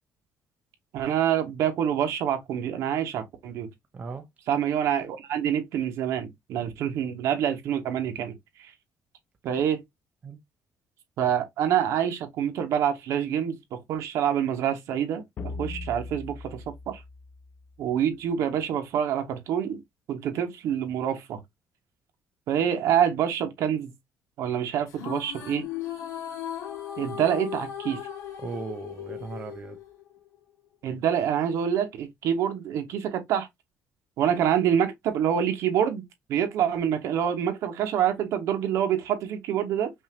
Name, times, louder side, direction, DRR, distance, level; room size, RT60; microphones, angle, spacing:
voice 1, 0.9-3.7 4.5-8.3 9.4-9.8 11.2-15.2 15.6-17.0 17.8-19.8 20.1-21.4 22.5-23.9 24.4-25.6 27.0-28.0 30.8-33.5 34.2-36.0 36.3-39.9, right 9 dB, 70° right, 1.2 m, -26 dB
voice 2, 3.9-4.3 6.6-6.7 10.2-10.4 28.4-29.8, right 4 dB, 25° right, 0.6 m, -37 dB
sound 1, 15.4-18.0, left 3 dB, 35° left, 0.4 m, -39 dB
sound 2, 24.9-30.4, left 10 dB, 70° left, 2.3 m, -37 dB
5.5 x 2.7 x 2.9 m
cardioid pair, 170°, 5 cm